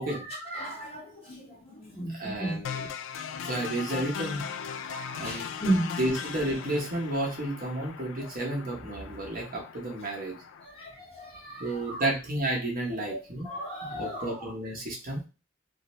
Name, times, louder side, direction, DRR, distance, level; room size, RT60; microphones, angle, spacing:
voice 1, 0.0-2.6 4.8-5.9 10.6-12.0 13.1-13.2 13.4-14.3, right 1 dB, 30° left, -6 dB, 1.3 m, -34 dB
voice 2, 2.1-2.9 3.4-4.4 5.2-5.5 6.0-10.3 11.6-13.5 13.8-15.2, right 1 dB, 45° right, -2 dB, 0.8 m, -32 dB
sound 1, 2.6-10.6, left 7 dB, 75° left, 0.3 m, -39 dB
2.6 x 2.0 x 3.0 m, 0.31 s
head